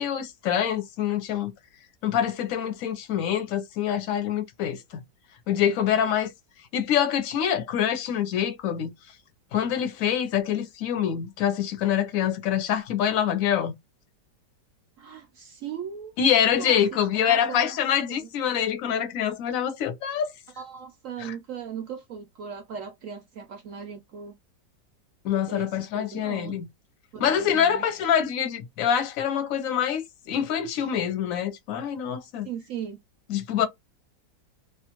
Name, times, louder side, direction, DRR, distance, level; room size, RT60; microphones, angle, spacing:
voice 1, 0.0-1.5 2.0-5.0 5.5-6.3 6.7-8.9 9.5-13.8 16.2-20.3 21.2-21.3 25.2-26.7 27.2-32.5 33.3-33.7, left 9 dB, 60° left, 1.0 m, -25 dB
voice 2, 15.0-16.2 16.5-17.8 18.1-18.3 20.6-24.3 25.5-26.6 27.1-27.8 32.5-33.0, right 7 dB, 75° right, 0.7 m, -38 dB
2.8 x 2.4 x 2.9 m
omnidirectional pair, 1.9 m